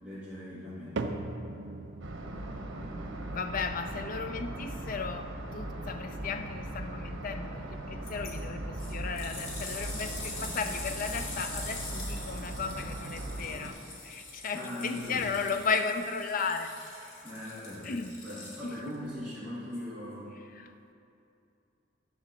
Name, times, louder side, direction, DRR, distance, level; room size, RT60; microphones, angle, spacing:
voice 1, 0.0-1.1 14.5-15.3 17.2-17.9 18.2-20.3, left 1 dB, 5° right, -11 dB, 1.5 m, -40 dB
sound 1, 1.0-17.3 17.6-18.1 18.7-18.8 19.6-19.7, right 2 dB, 65° right, 0.5 m, -46 dB
sound 2, 2.0-13.7, right 1 dB, 90° right, 0.9 m, -39 dB
voice 2, 3.3-16.7 17.8-18.1 18.6-18.9 20.6-20.7, left 5 dB, 45° left, 8 dB, 0.4 m, -35 dB
sound 3, 8.1-8.3 8.8-18.9 19.7-19.8, left 2 dB, 80° left, 1.6 m, -43 dB
10.0 x 3.9 x 6.3 m, 2.7 s
head